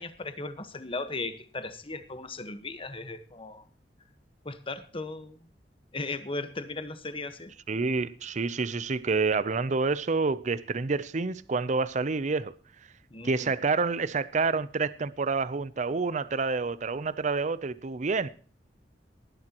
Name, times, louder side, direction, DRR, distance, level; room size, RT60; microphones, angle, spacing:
voice 1, 0.0-3.6 4.4-5.4 5.9-7.5 13.1-13.6, left 3 dB, 30° left, 1.3 m, -37 dB
voice 2, 7.7-12.5 13.2-18.3, right 4 dB, 45° right, 0.6 m, -28 dB
18.5 x 11.5 x 3.0 m
head